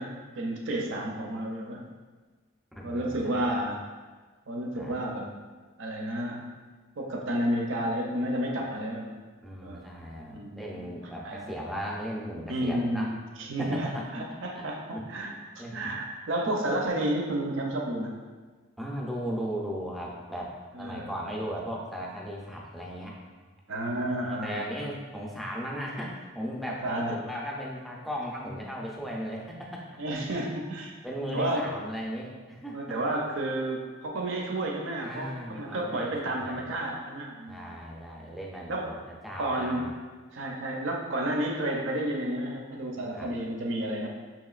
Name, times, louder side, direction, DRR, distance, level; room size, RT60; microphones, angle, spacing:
voice 1, 0.0-1.8 2.8-3.8 4.5-5.3 5.8-6.5 7.0-9.1 9.6-9.9 10.3-10.9 11.2-11.5 12.5-18.1 20.7-21.2 23.7-24.8 26.7-27.2 30.0-31.0 31.3-31.6 32.7-37.8 38.7-38.9 39.4-39.9 40.3-44.1, right 1 dB, 60° right, 0 dB, 0.6 m, -31 dB
voice 2, 2.8-3.6 4.8-5.0 9.4-13.1 13.6-14.1 14.5-14.7 14.9-16.0 16.4-16.5 18.8-20.5 20.8-23.2 23.9-30.0 31.0-33.0 35.0-36.7 37.5-39.9 43.1-43.3, equal, ahead, -3 dB, 0.5 m, -37 dB
6.1 x 2.9 x 2.4 m, 1.4 s
head